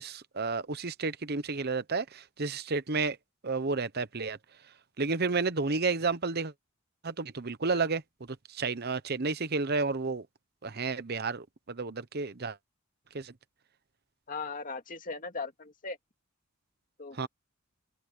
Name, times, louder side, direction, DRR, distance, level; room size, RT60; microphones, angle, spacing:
voice 1, 0.0-3.2 3.4-4.4 5.0-6.5 7.0-8.0 8.5-10.3 10.6-12.6 13.1-13.3 17.2-17.3, right 4 dB, 50° right, 1.0 m, -31 dB
voice 2, 14.3-16.0 17.0-17.3, left 4 dB, 40° left, 2.2 m, -38 dB
head